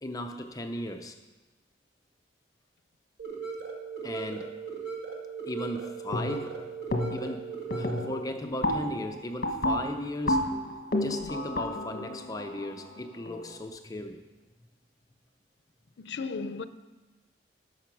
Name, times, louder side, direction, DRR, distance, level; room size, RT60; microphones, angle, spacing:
voice 1, 0.0-1.2 4.0-4.5 5.5-6.6 7.1-10.4 11.0-14.2, left 1 dB, 20° left, 0.5 m, -36 dB
sound 1, 3.2-8.2, right 5 dB, 90° right, 2.1 m, -38 dB
sound 2, 6.1-6.6 6.9-7.4 7.7-13.5, left 1 dB, 55° left, 1.3 m, -31 dB
voice 2, 16.0-16.7, left 4 dB, 75° left, 0.5 m, -35 dB
11.5 x 6.8 x 5.9 m
head